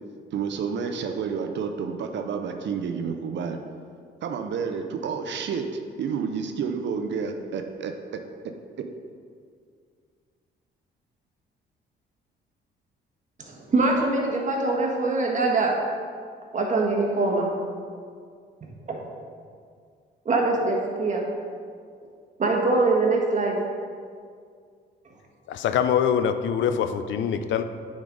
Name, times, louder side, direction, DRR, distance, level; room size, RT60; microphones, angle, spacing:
voice 1, 0.3-3.6 4.2-8.2 8.8-8.9, right 6 dB, 65° right, 5 dB, 0.6 m, -30 dB
voice 2, 13.4-15.7 16.5-17.5 18.9-19.0 20.2-21.3 22.4-23.6, right 3 dB, 40° right, 0 dB, 1.5 m, -23 dB
voice 3, 25.5-27.6, left 8 dB, 70° left, 10 dB, 0.5 m, -24 dB
9.1 x 5.0 x 4.0 m, 2.1 s
cardioid pair, 90°, 20 cm